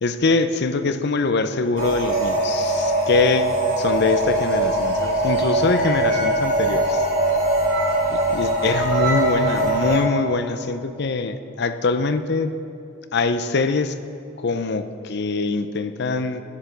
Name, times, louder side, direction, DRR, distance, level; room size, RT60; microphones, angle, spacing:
voice 1, 0.0-3.5 3.8-7.0 8.3-12.6 13.1-14.0 14.4-16.4, left 3 dB, 55° left, 11 dB, 0.6 m, -23 dB
sound 1, 1.8-10.0, right 1 dB, 65° right, 3.6 m, -21 dB
10.5 x 10.0 x 6.8 m, 2.7 s
head